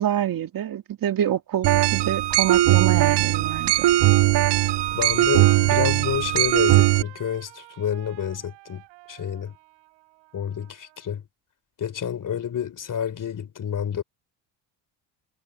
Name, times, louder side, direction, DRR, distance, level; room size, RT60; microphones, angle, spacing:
voice 1, 0.0-3.9, right 10 dB, 50° right, 2.5 m, -26 dB
sound 1, 1.6-7.0, right 14 dB, 70° right, 1.2 m, -19 dB
Trumpet, 3.0-11.1, right 25 dB, 85° right, 7.8 m, -51 dB
voice 2, 4.9-8.8 9.1-9.5 10.3-11.2 11.8-14.0, left 8 dB, 45° left, 3.5 m, -29 dB
supercardioid pair, 80°, 42 cm